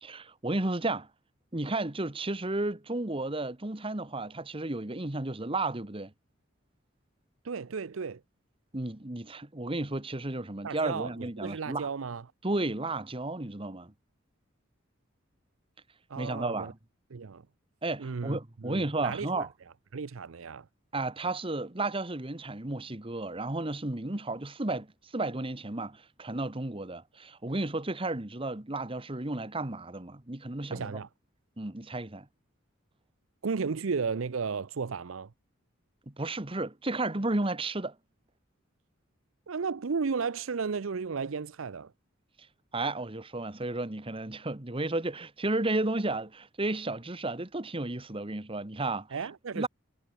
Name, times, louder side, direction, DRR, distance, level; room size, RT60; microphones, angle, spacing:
voice 1, 0.0-1.1 1.5-6.1 8.7-11.9 12.4-13.9 16.2-16.8 17.8-19.5 20.9-24.9 25.1-30.9 31.6-32.3 36.2-37.9 42.7-49.1 49.5-49.7, right 2 dB, 25° right, 1.4 m, -33 dB
voice 2, 7.4-8.2 10.6-12.3 16.1-16.7 17.1-17.5 18.0-19.3 19.9-20.7 30.7-31.1 33.4-35.3 39.5-41.9 49.1-49.7, right 5 dB, 85° right, 0.6 m, -34 dB
head